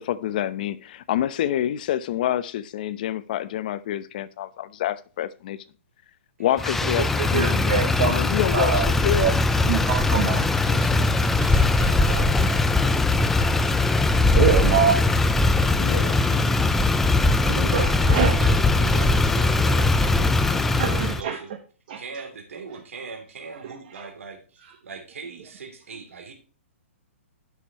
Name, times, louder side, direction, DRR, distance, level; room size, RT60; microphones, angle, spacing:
voice 1, 0.1-5.6 6.4-9.4 15.7-16.2, left 11 dB, 40° left, 0.8 m, -27 dB
voice 2, 6.4-6.9 10.4-13.1 16.0-16.7 18.3-21.5 22.0-26.3, right 4 dB, 80° right, 3.0 m, -40 dB
Motor vehicle (road), 6.6-21.2, left 3 dB, 5° left, 0.4 m, -20 dB
voice 3, 7.2-8.2 8.5-8.9 9.2-9.3 9.7-10.4 14.3-15.0 16.0-16.2 17.5-18.4 20.5-21.4 21.9-22.0 24.0-24.1, right 8 dB, 40° right, 1.3 m, -24 dB
11.5 x 6.7 x 3.0 m
hypercardioid pair, 165°, 7 cm